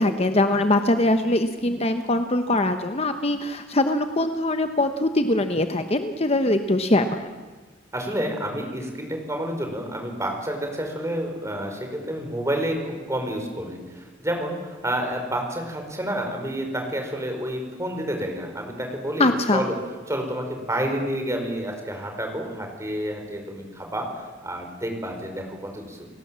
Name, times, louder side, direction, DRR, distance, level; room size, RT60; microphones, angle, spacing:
voice 1, 0.0-7.3 19.2-19.6, left 1 dB, 30° left, 8 dB, 1.1 m, -22 dB
voice 2, 7.9-19.7 20.1-24.1 24.4-26.1, right 1 dB, 15° right, 3 dB, 4.7 m, -29 dB
29.5 x 18.0 x 7.6 m, 1.4 s
head